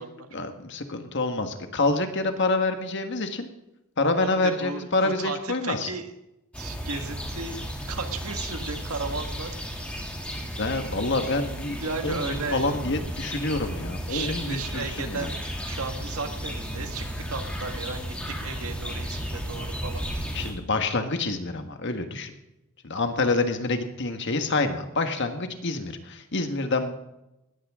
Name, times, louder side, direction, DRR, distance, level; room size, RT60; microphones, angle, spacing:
voice 1, 0.3-3.5 4.0-5.9 10.6-15.3 20.3-22.3 22.8-26.9, left 3 dB, 55° left, 6 dB, 1.6 m, -27 dB
voice 2, 4.2-6.1 6.6-7.6 7.9-9.5 11.8-12.7 14.1-15.4 15.6-20.1, right 4 dB, 80° right, 6 dB, 1.8 m, -34 dB
sound 1, 6.5-20.5, equal, 5° left, 2.6 m, -34 dB
19.5 x 15.0 x 3.7 m, 0.91 s
head